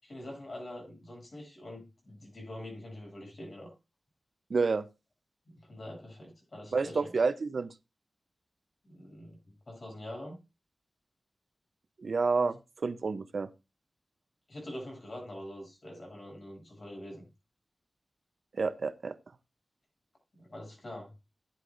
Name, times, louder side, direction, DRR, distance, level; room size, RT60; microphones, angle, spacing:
voice 1, 0.0-3.7 5.5-7.1 8.8-9.4 9.7-10.4 14.5-17.3 20.3-21.1, left 1 dB, 45° left, 7.7 m, -44 dB
voice 2, 4.5-4.9 6.7-7.7 12.0-13.5 18.6-19.1, right 4 dB, 65° right, 0.7 m, -29 dB
16.0 x 9.5 x 2.6 m
wide cardioid pair, 95°, 0 cm